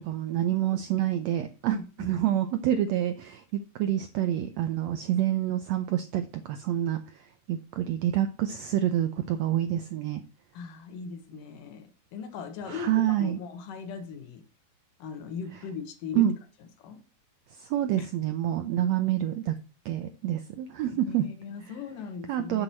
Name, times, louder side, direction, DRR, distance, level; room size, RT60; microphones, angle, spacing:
voice 1, 0.0-10.2 12.7-13.4 16.1-16.4 17.5-19.5 19.8-21.3 22.3-22.6, right 11 dB, 85° right, 9 dB, 1.5 m, -27 dB
voice 2, 1.7-2.1 10.5-14.4 15.0-16.3 16.8-17.0 18.0-18.1 18.8-19.3 20.9-22.6, left 6 dB, 75° left, 8 dB, 2.8 m, -39 dB
7.9 x 7.6 x 4.3 m, 0.35 s
omnidirectional pair, 3.8 m